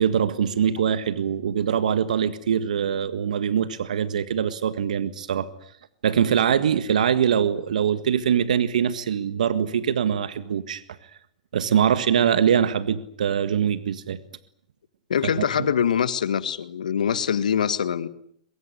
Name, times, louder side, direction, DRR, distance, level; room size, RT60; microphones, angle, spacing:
voice 1, 0.0-5.5 6.0-10.8 11.5-14.2, right 8 dB, 75° right, 13 dB, 1.7 m, -23 dB
voice 2, 15.1-18.1, left 8 dB, 80° left, 14 dB, 1.8 m, -24 dB
23.5 x 23.0 x 9.9 m, 0.66 s
hypercardioid pair, 115°, 4 cm